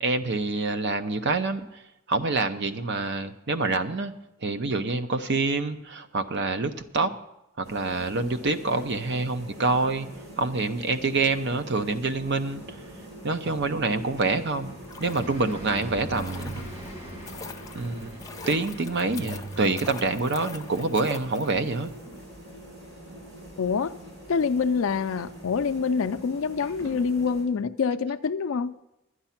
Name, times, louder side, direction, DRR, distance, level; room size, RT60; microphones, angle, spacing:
voice 1, 0.0-1.8 2.1-4.1 4.4-7.1 7.6-10.1 10.4-12.8 13.2-16.6 17.7-18.2 18.5-21.9, right 3 dB, 55° right, 0.7 m, -26 dB
sound 1, 7.6-27.4, right 1 dB, 85° right, 5.8 m, -45 dB
Car passing by, 11.1-22.0, right 1 dB, 25° right, 1.8 m, -43 dB
sound 2, 14.7-21.9 22.1-22.2, left 4 dB, 15° left, 0.6 m, -43 dB
voice 2, 23.6-23.9 24.3-28.7, left 5 dB, 75° left, 0.4 m, -26 dB
11.5 x 9.7 x 5.8 m
head